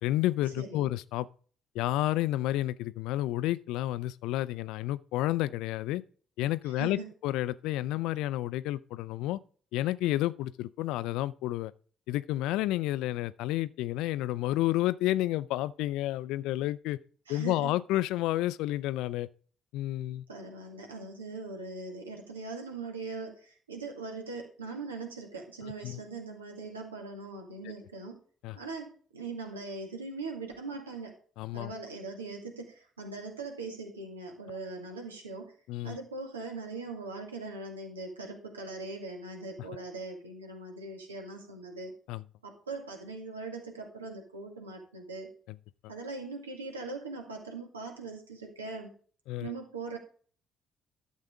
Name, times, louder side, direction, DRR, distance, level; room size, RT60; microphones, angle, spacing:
voice 1, 0.0-1.3 1.7-6.0 6.4-9.4 9.7-11.7 12.1-17.0 17.3-19.3 19.7-20.2 25.8-26.0 27.6-27.7 28.4-28.6 31.4-31.7 35.7-36.0 42.1-42.2 49.3-49.5, left 15 dB, 65° left, 0.4 m, -30 dB
voice 2, 0.6-0.9 6.6-7.1 17.3-17.7 20.3-28.2 28.5-31.1 31.5-35.5 35.8-41.9 42.4-45.3 45.9-48.9 49.4-50.0, right 3 dB, 85° right, 1.8 m, -41 dB
12.0 x 7.3 x 3.6 m
figure-of-eight pair, 45°, 0 cm